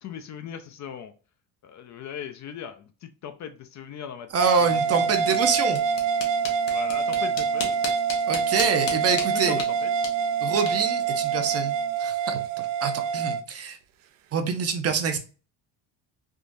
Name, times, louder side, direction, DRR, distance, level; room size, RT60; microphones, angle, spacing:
voice 1, 0.0-1.1 1.6-4.8 5.3-5.5 6.7-7.9 9.5-9.9, left 8 dB, 45° left, 8 dB, 0.4 m, -39 dB
voice 2, 4.3-5.8 8.3-9.6 10.4-12.4 12.8-13.8 14.3-15.2, right 5 dB, 35° right, 7 dB, 0.6 m, -26 dB
sound 1, 4.4-13.4, right 6 dB, 85° right, 0.5 m, -26 dB
sound 2, 5.0-12.0, left 4 dB, 80° left, 1.1 m, -38 dB
3.6 x 2.4 x 2.5 m, 0.35 s
cardioid pair, 100°, 43 cm